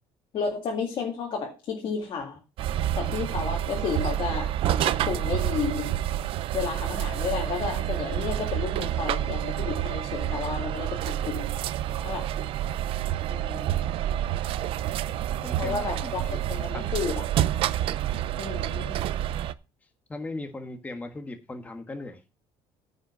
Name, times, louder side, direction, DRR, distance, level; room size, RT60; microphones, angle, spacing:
voice 1, 0.3-2.4 3.0-6.0 6.5-11.5 12.0-12.3 13.3-13.9 15.6-16.2 16.5-17.2 18.4-19.0, left 6 dB, 50° left, 2.1 m, -32 dB
sound 1, 2.6-19.5, right 12 dB, 60° right, 0.6 m, -28 dB
voice 2, 15.3-17.0 20.1-22.2, left 2 dB, 15° left, 1.5 m, -39 dB
9.9 x 5.5 x 6.0 m
cardioid pair, 145°, 10 cm